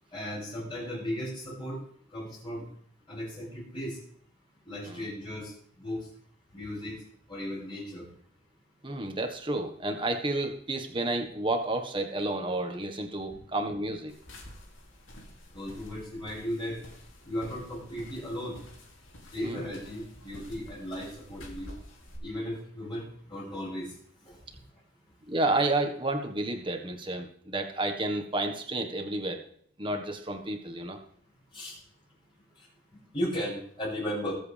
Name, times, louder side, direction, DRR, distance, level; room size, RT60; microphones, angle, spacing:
voice 1, 0.1-1.8 2.1-2.7 3.1-4.0 4.7-5.5 5.8-6.0 6.5-7.0 7.3-8.1 15.5-16.8 17.3-18.6 19.3-21.7 22.2-23.9 24.2-24.4 31.5-31.8 33.1-34.3, equal, 25° left, -11 dB, 6.9 m, -36 dB
voice 2, 8.8-14.1 19.4-19.6 25.3-29.4 29.8-31.0, right 2 dB, 25° right, 5 dB, 1.5 m, -31 dB
sound 1, 14.1-22.2, left 1 dB, 90° left, 2.8 m, -49 dB
22.0 x 7.9 x 3.5 m, 0.63 s
head